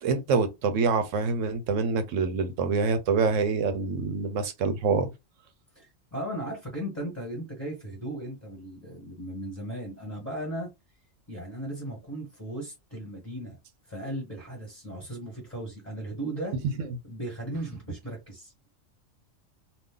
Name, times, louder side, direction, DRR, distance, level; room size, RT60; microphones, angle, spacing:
voice 1, 0.0-5.1, right 5 dB, 75° right, 1.0 m, -26 dB
voice 2, 5.7-10.7 11.3-13.6 13.9-16.6 17.0-18.5, right 1 dB, 10° left, 1.3 m, -36 dB
2.6 x 2.4 x 3.7 m
omnidirectional pair, 1.3 m